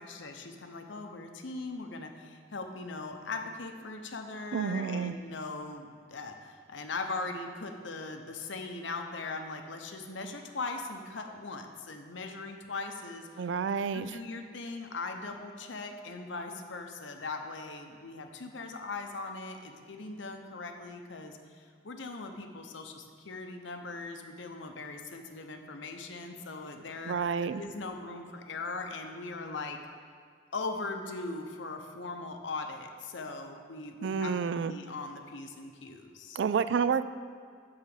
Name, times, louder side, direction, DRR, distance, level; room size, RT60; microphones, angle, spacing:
voice 1, 0.0-13.5 13.9-29.8 30.5-34.3 34.7-36.4, left 3 dB, 70° left, 4 dB, 0.9 m, -40 dB
voice 2, 4.5-5.1 13.4-14.2 27.0-27.6 34.0-34.7 36.4-37.0, right 6 dB, 65° right, 13 dB, 0.3 m, -29 dB
11.0 x 4.0 x 7.1 m, 2.1 s
head